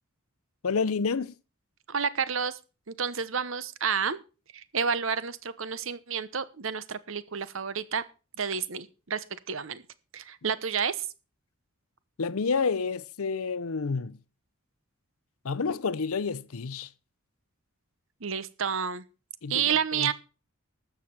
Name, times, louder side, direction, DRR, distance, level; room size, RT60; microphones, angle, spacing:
voice 1, 0.6-1.3 12.2-14.2 15.4-16.9 19.4-20.1, left 5 dB, 80° left, 0.6 m, -29 dB
voice 2, 1.9-2.6 2.9-4.2 4.5-8.0 8.4-9.8 10.1-11.0 18.2-19.0 19.5-20.1, right 6 dB, 65° right, 1.0 m, -30 dB
13.0 x 7.5 x 5.7 m
head